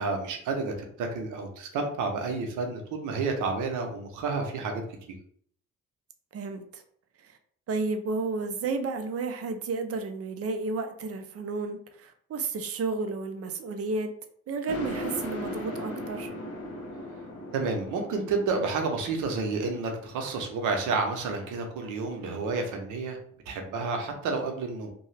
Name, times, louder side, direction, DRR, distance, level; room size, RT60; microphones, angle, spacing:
voice 1, 0.0-4.8 17.5-23.2 23.5-24.9, right 4 dB, 85° right, 4 dB, 0.7 m, -30 dB
voice 2, 6.3-6.8 7.2-7.4 7.7-14.1 14.5-16.3, right 3 dB, 50° right, 7 dB, 0.5 m, -32 dB
sound 1, 14.7-21.4, left 1 dB, 50° left, 1.1 m, -38 dB
2.8 x 2.2 x 3.2 m, 0.62 s
cardioid pair, 90°, 30 cm